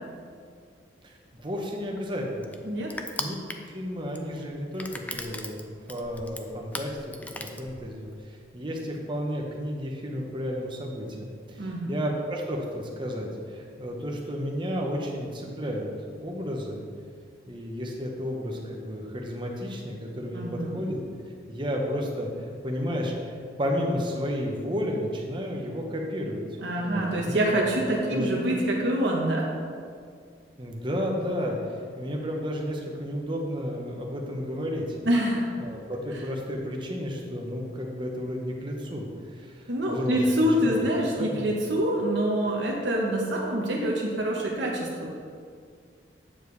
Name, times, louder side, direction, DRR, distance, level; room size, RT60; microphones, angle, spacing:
voice 1, 1.0-2.5 3.1-3.4 3.7-15.9 16.2-16.8 17.5-21.0 21.5-26.4 26.7-27.7 28.1-28.4 30.6-35.0 35.6-40.9 41.1-41.5, equal, 25° right, 0 dB, 1.0 m, -32 dB
Crushing, 1.4-8.2, left 2 dB, 10° left, 0.4 m, -39 dB
voice 2, 2.7-3.0 11.6-11.9 20.3-20.9 26.6-29.5 35.0-35.5 39.7-44.9, right 1 dB, 70° right, -2 dB, 1.0 m, -26 dB
8.7 x 7.1 x 3.3 m, 2.2 s
head